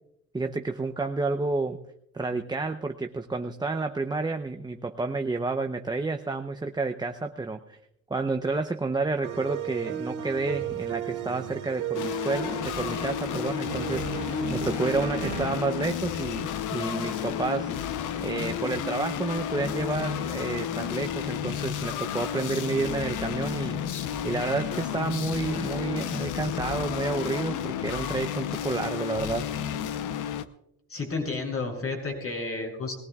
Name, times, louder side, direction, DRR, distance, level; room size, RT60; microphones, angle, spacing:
voice 1, 0.3-1.9 2.1-7.8 8.1-17.7 18.2-23.8 24.2-29.5, right 3 dB, 15° right, 5 dB, 0.8 m, -30 dB
sound 1, 9.2-15.5, right 8 dB, 85° right, 2.1 m, -35 dB
sound 2, 11.9-30.4, left 9 dB, 85° left, 0.9 m, -32 dB
voice 2, 30.9-33.0, left 3 dB, 50° left, 1 dB, 7.0 m, -31 dB
21.0 x 18.5 x 2.4 m, 0.80 s
cardioid pair, 90°, 30 cm